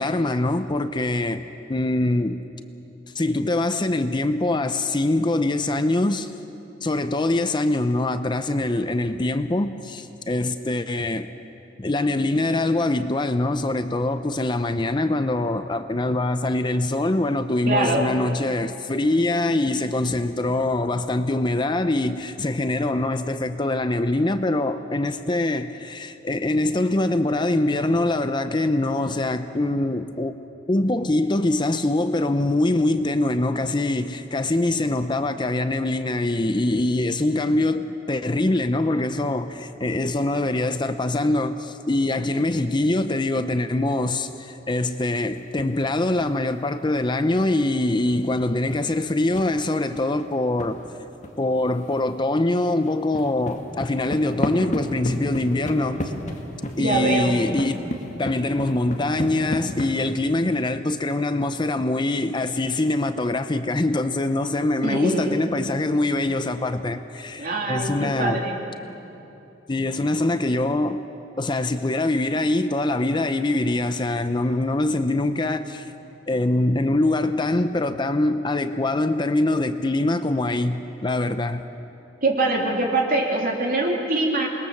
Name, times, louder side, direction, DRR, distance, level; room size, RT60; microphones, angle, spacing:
voice 1, 0.0-2.5 3.1-6.3 6.8-11.3 11.8-30.3 30.7-50.8 51.4-56.1 56.8-57.8 58.2-68.4 69.7-71.0 71.4-75.9 76.3-81.6, left 2 dB, 25° left, 0.6 m, -23 dB
voice 2, 17.7-18.1 56.8-57.4 64.8-65.3 67.4-68.6 82.2-84.5, right 2 dB, 50° right, 3.3 m, -23 dB
sound 1, 45.1-45.9 46.2-50.7 51.2-51.3 51.6-52.2 52.4-59.9, equal, 40° left, 2.2 m, -33 dB
27.5 x 21.0 x 7.1 m
head